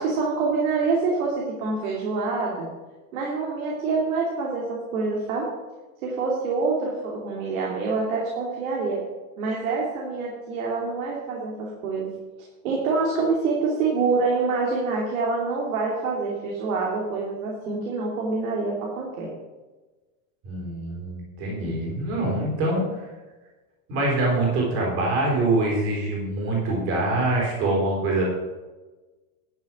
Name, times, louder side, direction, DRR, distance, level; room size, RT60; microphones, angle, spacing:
voice 1, 0.0-2.7 3.1-5.5 6.0-9.0 9.4-12.1 12.6-19.3, right 4 dB, 70° right, -3 dB, 2.8 m, -26 dB
voice 2, 20.4-23.0 23.9-28.2, right 2 dB, 30° right, -3 dB, 3.8 m, -24 dB
11.0 x 7.4 x 6.1 m, 1.2 s
supercardioid pair, 180°, 43 cm